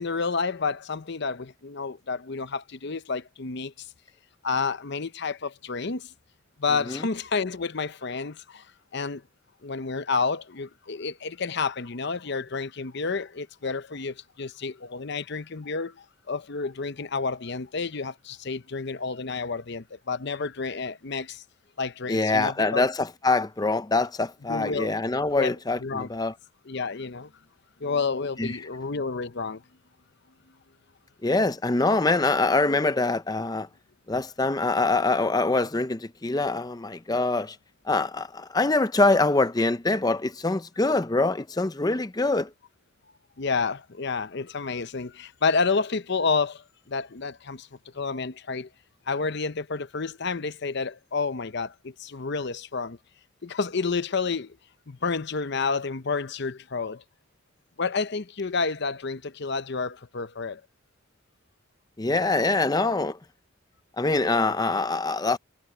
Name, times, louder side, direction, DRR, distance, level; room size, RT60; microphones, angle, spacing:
voice 1, 0.0-3.9 4.4-6.1 6.6-9.2 9.6-21.4 21.8-22.8 24.5-24.9 25.4-25.5 25.8-26.1 26.7-27.3 27.8-29.6 43.4-47.7 47.9-48.7 49.1-53.0 53.4-54.6 54.9-57.0 57.8-60.6, left 4 dB, 55° left, 0.8 m, -30 dB
voice 2, 22.1-26.3 28.4-28.6 31.2-33.7 34.1-37.6 37.9-42.5 62.0-63.2 64.0-65.4, left 3 dB, 20° left, 0.5 m, -24 dB
head